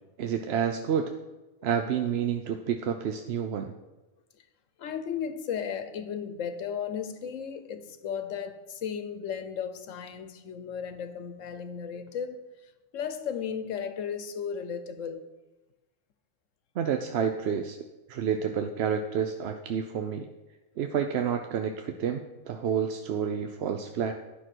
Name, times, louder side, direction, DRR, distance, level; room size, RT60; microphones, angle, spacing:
voice 1, 0.2-1.1 1.6-3.7 16.8-17.8 18.1-20.3 20.8-24.1, right 7 dB, 65° right, 6 dB, 0.8 m, -29 dB
voice 2, 4.8-15.3, left 7 dB, 85° left, 10 dB, 1.2 m, -35 dB
10.0 x 6.0 x 6.1 m, 1.1 s
omnidirectional pair, 1.3 m